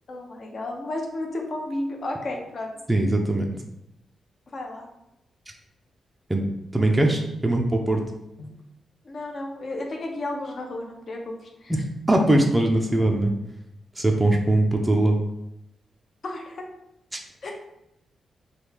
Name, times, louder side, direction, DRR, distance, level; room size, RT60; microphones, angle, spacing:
voice 1, 0.1-2.7 4.5-4.9 8.4-8.5 9.0-11.7 16.2-16.7 17.4-17.5, left 2 dB, 50° left, 1 dB, 0.6 m, -33 dB
voice 2, 2.9-3.5 6.3-6.5 6.7-8.0 11.7-11.8 12.1-13.3 14.0-15.2 17.1-17.2, right 1 dB, 10° right, 1 dB, 0.4 m, -21 dB
3.1 x 2.3 x 3.4 m, 0.85 s
wide cardioid pair, 125°, 0 cm